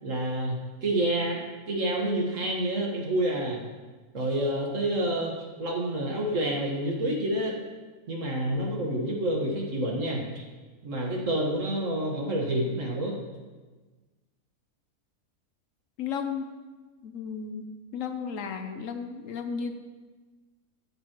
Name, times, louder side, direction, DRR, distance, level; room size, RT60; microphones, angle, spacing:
voice 1, 0.0-3.6 4.1-7.6 8.1-10.4 10.8-13.1, right 1 dB, 60° right, -1 dB, 1.9 m, -28 dB
voice 2, 16.0-16.6 17.0-19.8, left 6 dB, 65° left, 7 dB, 1.0 m, -34 dB
14.0 x 7.8 x 3.0 m, 1.3 s
omnidirectional pair, 1.5 m